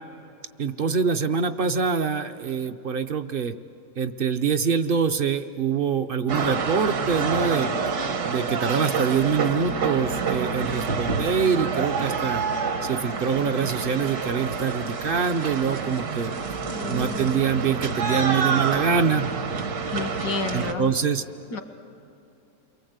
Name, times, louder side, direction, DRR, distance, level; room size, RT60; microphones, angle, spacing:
voice 1, 0.6-3.5 4.0-7.7 8.3-12.4 12.8-16.6 16.9-19.3 20.5-21.2, right 6 dB, 55° right, 9 dB, 0.6 m, -25 dB
sound 1, 6.3-20.7, right 5 dB, 70° right, 1.8 m, -28 dB
voice 2, 16.7-17.4 19.9-20.9 21.5-21.6, left 4 dB, 85° left, 7 dB, 2.1 m, -31 dB
29.5 x 23.5 x 8.0 m, 2.7 s
omnidirectional pair, 1.8 m